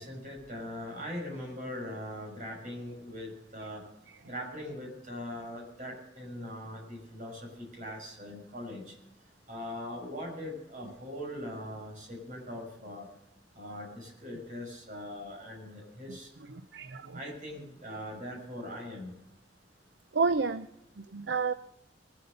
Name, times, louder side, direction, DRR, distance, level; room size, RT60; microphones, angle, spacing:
voice 1, 0.0-3.8 4.2-8.9 9.5-13.1 13.5-16.3 17.1-19.1, left 1 dB, 45° right, -1 dB, 6.4 m, -41 dB
voice 2, 16.5-17.2 20.1-20.7 21.0-21.5, right 4 dB, 70° right, 11 dB, 0.6 m, -30 dB
20.5 x 8.1 x 6.5 m, 0.83 s
head